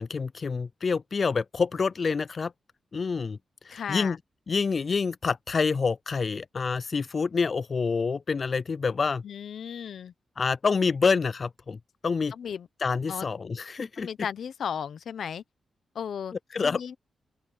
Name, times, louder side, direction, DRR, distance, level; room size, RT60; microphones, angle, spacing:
voice 1, 0.0-2.5 2.9-3.4 3.7-4.2 4.5-9.2 10.4-11.8 12.0-12.3 12.8-14.1 16.5-16.8, left 5 dB, 40° left, 0.4 m, -27 dB
voice 2, 3.7-4.2 9.2-10.1 12.3-12.7 13.1-13.3 14.0-15.4 15.9-16.3 16.6-17.0, left 8 dB, 70° left, 0.9 m, -35 dB
open air
wide cardioid pair, 130°, 0 cm